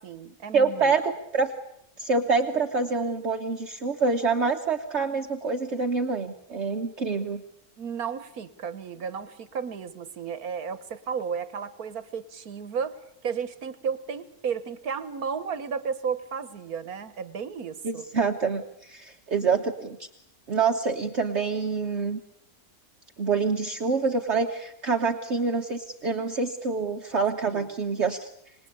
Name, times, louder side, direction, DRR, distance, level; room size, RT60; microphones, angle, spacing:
voice 1, 0.0-0.9 7.8-18.1 27.5-27.7, right 6 dB, 80° right, 14 dB, 1.6 m, -33 dB
voice 2, 0.5-1.5 2.0-7.4 17.8-20.0 20.5-22.2 23.2-28.3, right 4 dB, 50° right, 4 dB, 1.4 m, -26 dB
26.5 x 20.0 x 8.5 m, 0.75 s
omnidirectional pair, 1.6 m